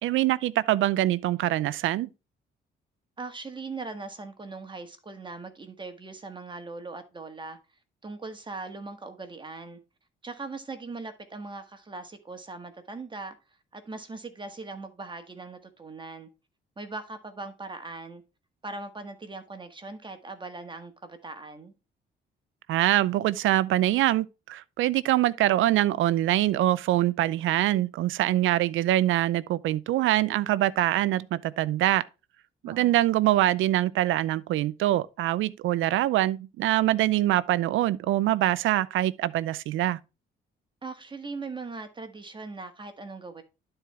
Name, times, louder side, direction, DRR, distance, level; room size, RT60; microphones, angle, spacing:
voice 1, 0.0-2.1 22.7-32.0 32.6-40.0, right 14 dB, 80° right, 0.6 m, -24 dB
voice 2, 3.2-7.6 8.0-9.8 10.2-13.3 13.7-16.3 16.8-18.2 18.6-21.7 32.6-33.0 40.8-43.4, right 3 dB, 25° right, 1.6 m, -40 dB
12.0 x 4.4 x 3.3 m
cardioid pair, 90°, 20 cm